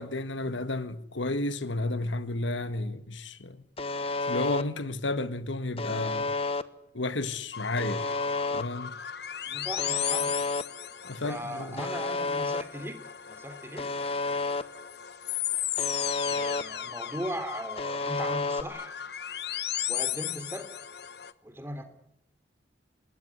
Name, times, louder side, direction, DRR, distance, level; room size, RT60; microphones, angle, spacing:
voice 1, 0.0-3.6 4.2-6.3 6.9-8.0 8.5-9.0 11.0-11.8, left 2 dB, 85° left, 1.7 m, -32 dB
Alarm, 3.8-4.6 5.8-6.6 7.8-8.6 9.8-10.6 11.8-12.6 13.8-14.6 15.8-16.6 17.8-18.6, left 3 dB, 30° left, 1.1 m, -30 dB
sound 1, 7.5-21.3, left 11 dB, 60° left, 1.2 m, -36 dB
voice 2, 9.5-10.4 11.2-13.0 13.3-13.9 16.3-18.9 19.9-20.7 21.4-21.8, equal, 15° right, 3.2 m, -38 dB
26.5 x 21.0 x 9.9 m
head